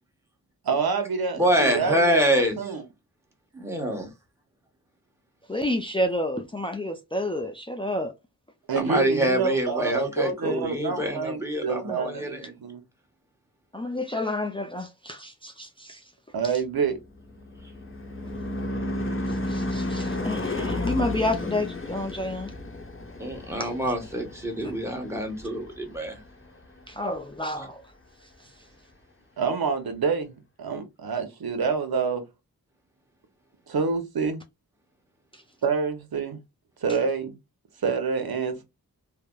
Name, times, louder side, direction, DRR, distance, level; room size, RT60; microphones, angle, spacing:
voice 1, 0.6-2.8 8.7-12.8 16.3-17.0 29.4-32.2 33.7-34.4 35.6-36.4 36.8-37.3 37.8-38.6, right 5 dB, 75° right, 0.8 m, -27 dB
voice 2, 1.3-2.5 3.6-4.1 8.7-12.5 23.2-26.2, equal, 5° right, 1.1 m, -26 dB
voice 3, 5.5-8.1 13.7-16.0 19.3-22.5 23.6-23.7 26.9-27.8 35.3-35.4, left 1 dB, 15° left, 0.4 m, -30 dB
Car passing by / Truck / Engine, 17.0-25.7, left 1 dB, 35° left, 0.8 m, -32 dB
3.2 x 2.1 x 2.3 m
wide cardioid pair, 55°, 37 cm